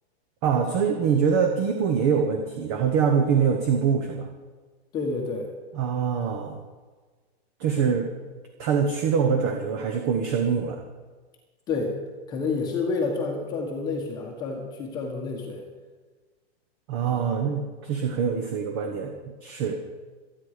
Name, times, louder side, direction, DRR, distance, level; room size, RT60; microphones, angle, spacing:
voice 1, 0.4-4.3 5.7-6.6 7.6-8.1 8.6-10.8 16.9-19.1 19.4-19.8, right 6 dB, 20° right, 4 dB, 1.0 m, -24 dB
voice 2, 4.9-5.5 11.7-11.9 12.3-15.6 17.1-17.3, left 4 dB, 10° left, 1 dB, 1.3 m, -29 dB
26.0 x 9.6 x 5.0 m, 1.4 s
hypercardioid pair, 175°, 33 cm